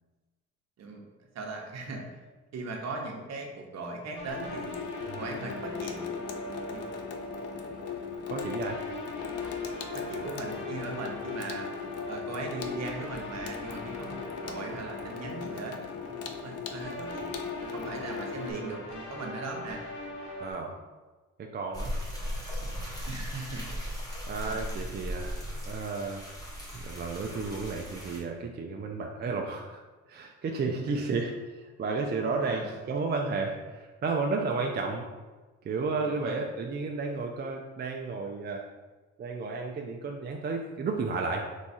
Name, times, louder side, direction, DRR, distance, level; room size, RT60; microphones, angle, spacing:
voice 1, 1.3-2.1 2.5-4.7 5.2-6.1 6.7-6.9 9.9-11.7 12.1-17.4 17.7-19.8 23.1-23.6 24.4-24.6 29.2-29.4 30.9-31.3 32.4-32.8 36.0-36.5, right 3 dB, 60° right, 1 dB, 0.9 m, -39 dB
sound 1, 4.2-20.5, left 1 dB, 70° left, 1.5 m, -41 dB
Water tap faucet / Sink (filling or washing), 4.3-18.5, left 6 dB, 55° left, 0.5 m, -39 dB
voice 2, 8.3-8.8 20.4-20.8 21.4-21.9 24.3-25.4 25.6-26.2 26.7-29.8 30.1-35.1 35.6-38.6 39.2-41.4, right 4 dB, 35° right, 2 dB, 0.4 m, -32 dB
sound 2, 21.7-28.2, equal, 10° left, 1.5 m, -37 dB
3.5 x 3.1 x 4.0 m, 1.3 s
cardioid pair, 90°, 30 cm